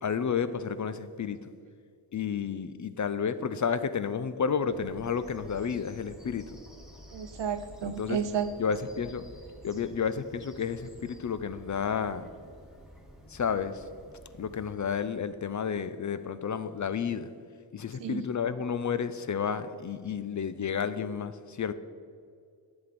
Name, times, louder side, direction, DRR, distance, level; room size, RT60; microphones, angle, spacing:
voice 1, 0.0-1.4 2.1-6.6 7.8-8.2 8.6-9.2 9.6-12.3 13.3-13.8 14.4-17.3 17.7-21.7, left 6 dB, 45° left, 13 dB, 0.4 m, -31 dB
Bird vocalization bird call bird song, 4.7-14.7, equal, ahead, 1.3 m, -51 dB
voice 2, 7.1-8.5 18.0-18.2, right 7 dB, 70° right, 10 dB, 0.7 m, -31 dB
8.6 x 7.4 x 4.2 m, 2.3 s
cardioid pair, 55°, 44 cm